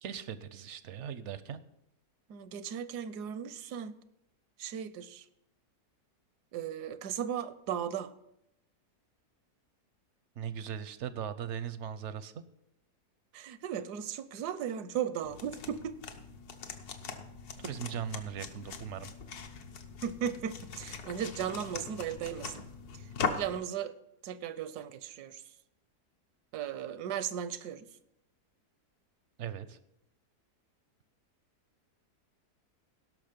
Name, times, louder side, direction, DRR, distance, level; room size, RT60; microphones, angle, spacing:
voice 1, 0.0-1.6 10.4-12.4 17.6-19.1 29.4-29.8, right 8 dB, 65° right, 14 dB, 0.7 m, -39 dB
voice 2, 2.3-4.0 4.6-5.3 6.5-8.1 13.3-16.0 20.0-22.6 22.9-23.0 23.3-23.9 24.2-25.4 26.5-27.9, right 9 dB, 85° right, 14 dB, 1.2 m, -36 dB
sound 1, 15.3-23.6, left 5 dB, 75° left, 1.5 m, -41 dB
17.5 x 6.0 x 5.2 m, 0.81 s
omnidirectional pair, 1.7 m